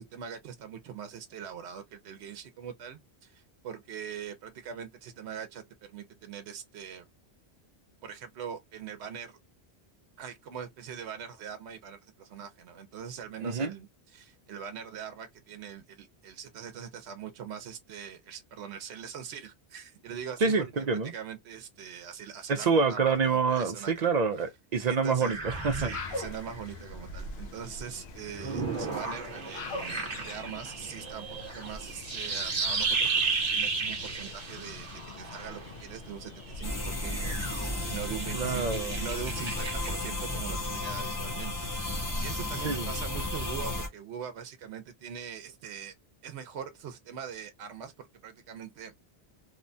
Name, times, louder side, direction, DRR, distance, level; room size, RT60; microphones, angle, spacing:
voice 1, 0.0-7.1 8.0-9.4 10.2-24.2 24.9-25.3 25.7-33.1 33.5-45.9 46.2-48.9, right 8 dB, 80° right, 0.9 m, -42 dB
voice 2, 13.4-13.7 20.4-21.1 22.5-25.9 38.3-39.0 42.6-42.9, right 5 dB, 55° right, 0.5 m, -27 dB
sound 1, 25.2-27.0 28.3-35.8 36.4-40.3, right 4 dB, 40° right, 0.9 m, -34 dB
sound 2, 25.4-40.3, left 2 dB, 70° left, 0.8 m, -43 dB
sound 3, 36.6-43.9, left 2 dB, 20° left, 0.6 m, -33 dB
2.9 x 2.2 x 2.5 m
omnidirectional pair, 1.1 m